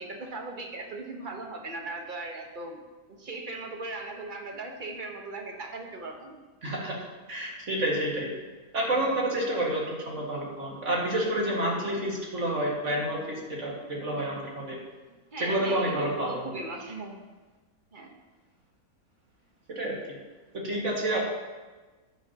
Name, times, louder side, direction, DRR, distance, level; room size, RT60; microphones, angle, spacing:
voice 1, 0.0-2.8 3.1-6.7 15.3-17.2 17.9-18.1, right 2 dB, 35° right, 2 dB, 1.3 m, -38 dB
voice 2, 6.6-8.3 8.7-14.8 15.4-16.5 19.7-20.0 20.5-21.2, right 1 dB, 55° right, -3 dB, 2.3 m, -29 dB
12.5 x 9.3 x 2.9 m, 1.3 s
omnidirectional pair, 1.5 m